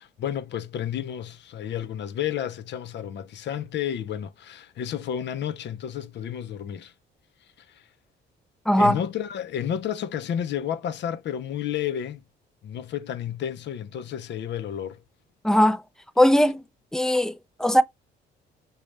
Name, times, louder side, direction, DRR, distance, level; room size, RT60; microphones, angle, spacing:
voice 1, 0.0-6.9 7.7-7.8 8.8-12.2 12.6-15.0, left 9 dB, 60° left, 0.5 m, -31 dB
voice 2, 8.7-9.0 15.4-15.8 16.2-16.6 16.9-17.8, equal, 5° left, 0.4 m, -19 dB
5.2 x 2.3 x 3.1 m
cardioid pair, 90°, 20 cm